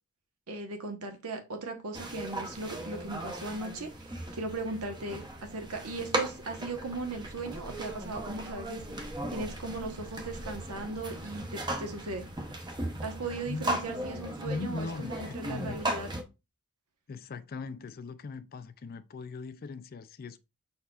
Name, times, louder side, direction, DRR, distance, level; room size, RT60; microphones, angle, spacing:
voice 1, 0.5-8.9 9.3-12.3 13.0-16.1, right 3 dB, 85° right, 1.1 m, -38 dB
sound 1, 1.9-16.2, right 1 dB, 20° right, 0.7 m, -37 dB
voice 2, 14.4-15.8 17.1-20.4, left 4 dB, 45° left, 0.4 m, -39 dB
5.3 x 4.2 x 2.3 m
head